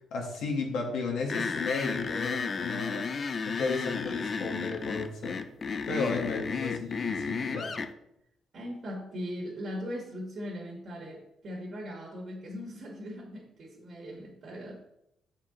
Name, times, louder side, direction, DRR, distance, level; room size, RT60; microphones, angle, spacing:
voice 1, 0.1-3.1 3.5-5.4 5.8-7.8, left 4 dB, 80° left, -1 dB, 1.3 m, -33 dB
sound 1, 1.3-7.9, left 5 dB, 35° left, 0.4 m, -33 dB
voice 2, 8.5-14.8, equal, 45° right, -2 dB, 1.6 m, -39 dB
7.7 x 4.4 x 3.8 m, 0.81 s
cardioid pair, 145°, 0 cm